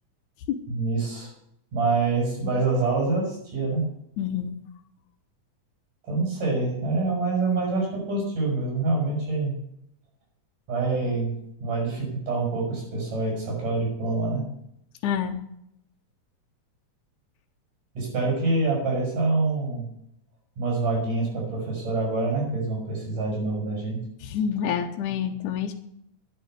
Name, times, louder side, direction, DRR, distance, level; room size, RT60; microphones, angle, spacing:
voice 1, 0.7-1.3 1.7-3.9 6.0-9.5 10.7-14.4 18.0-19.9 20.6-24.0, right 3 dB, 90° right, -2 dB, 8.2 m, -26 dB
voice 2, 4.2-4.5 15.0-15.4 24.2-25.7, left 8 dB, 75° left, 3 dB, 2.5 m, -27 dB
11.0 x 10.0 x 8.0 m, 0.75 s
omnidirectional pair, 3.6 m